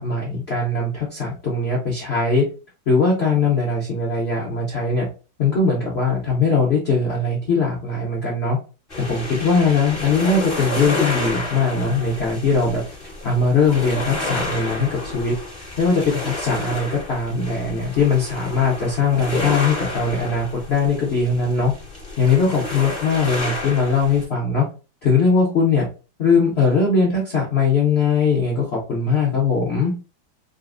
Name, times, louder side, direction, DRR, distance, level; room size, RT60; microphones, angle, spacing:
voice 1, 0.0-2.4 2.9-5.0 5.4-8.6 9.0-12.8 13.2-15.3 15.8-21.7 22.2-24.6 25.0-25.8 26.2-29.9, left 4 dB, 75° left, -4 dB, 0.5 m, -20 dB
sound 1, 8.9-24.3, left 2 dB, 35° left, 1.1 m, -30 dB
3.9 x 2.0 x 2.4 m, 0.34 s
omnidirectional pair, 2.2 m